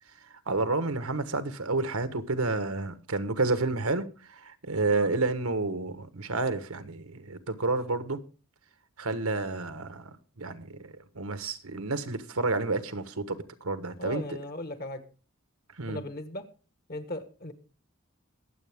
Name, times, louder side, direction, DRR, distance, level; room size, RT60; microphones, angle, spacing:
voice 1, 0.5-8.2 9.0-14.4 15.8-16.0, right 3 dB, 80° right, 1.4 m, -30 dB
voice 2, 14.0-15.0 15.9-16.4 16.9-17.5, left 1 dB, 45° left, 1.5 m, -37 dB
22.5 x 8.1 x 3.6 m
head